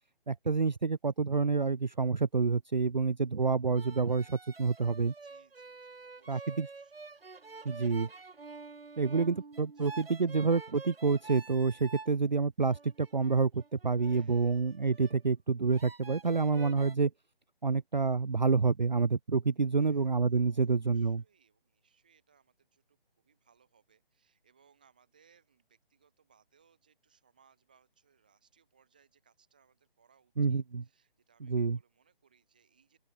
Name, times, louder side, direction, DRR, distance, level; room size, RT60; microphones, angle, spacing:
voice 1, 0.3-5.1 6.3-6.7 7.6-8.1 9.0-17.1 17.6-21.2 30.4-30.8 31.4-31.8, right 4 dB, 50° right, 0.5 m, -28 dB
sound 1, 3.8-12.1 12.7-15.2 15.7-17.0, right 4 dB, 80° right, 2.3 m, -48 dB
voice 2, 5.2-7.1 9.2-9.4 9.7-9.9 12.1-12.2 14.1-14.6 19.8-20.1 20.4-33.0, right 7 dB, 10° right, 1.5 m, -69 dB
open air
hypercardioid pair, 180°, 29 cm